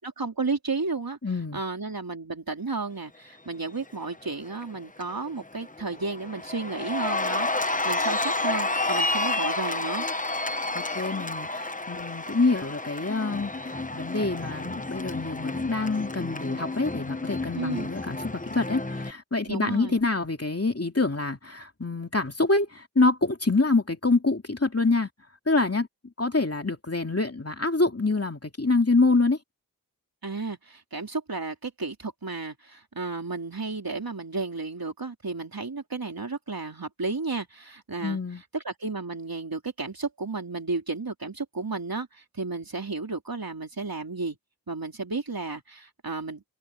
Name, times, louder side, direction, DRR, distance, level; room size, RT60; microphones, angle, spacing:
voice 1, 0.0-1.2 1.5-10.1 17.6-17.9 19.5-20.0 30.2-38.2 38.5-44.4 44.7-46.4, right 3 dB, 75° right, 3.5 m, -33 dB
voice 2, 1.2-1.6 10.7-25.1 25.5-25.9 26.2-29.4 38.0-38.4, left 3 dB, 40° left, 2.7 m, -26 dB
Cheering, 4.2-4.6 5.0-19.1, left 2 dB, 20° left, 1.0 m, -30 dB
wide cardioid pair, 50°, 35 cm